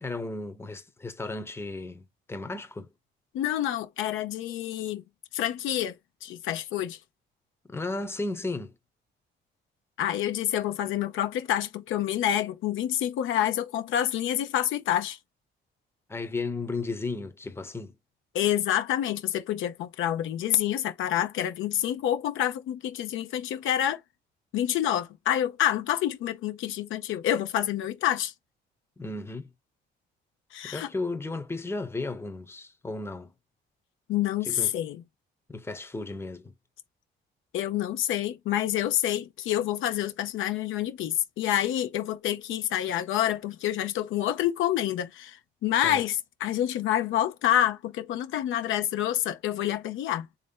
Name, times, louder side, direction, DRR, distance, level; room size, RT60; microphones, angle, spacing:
voice 1, 0.0-2.9 7.7-8.7 16.1-17.9 29.0-29.5 30.6-33.3 34.4-34.7 35.5-36.5 45.8-46.0, left 3 dB, 10° left, 0.7 m, -34 dB
voice 2, 3.3-5.0 5.3-5.9 6.2-7.0 10.0-15.2 18.3-24.0 24.5-28.3 30.5-30.9 34.1-35.0 37.5-50.3, left 11 dB, 85° left, 0.7 m, -28 dB
3.2 x 2.7 x 3.6 m
cardioid pair, 90°, 20 cm